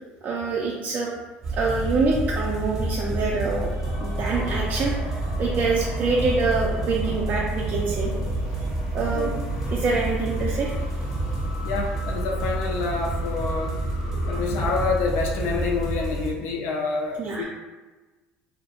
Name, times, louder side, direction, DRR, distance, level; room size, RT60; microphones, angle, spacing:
voice 1, 0.2-1.1 1.5-3.7 4.0-5.0 5.4-8.1 8.9-9.3 9.7-10.7 17.2-17.4, right 4 dB, 40° right, -3 dB, 0.3 m, -25 dB
sound 1, 1.4-16.3, right 1 dB, 10° right, 0.7 m, -29 dB
sound 2, 3.8-15.8, left 1 dB, 90° left, 0.9 m, -39 dB
voice 2, 11.6-13.8 14.3-17.4, left 4 dB, 70° left, 0 dB, 0.4 m, -27 dB
2.3 x 2.0 x 2.8 m, 1.2 s
cardioid pair, 115°, 4 cm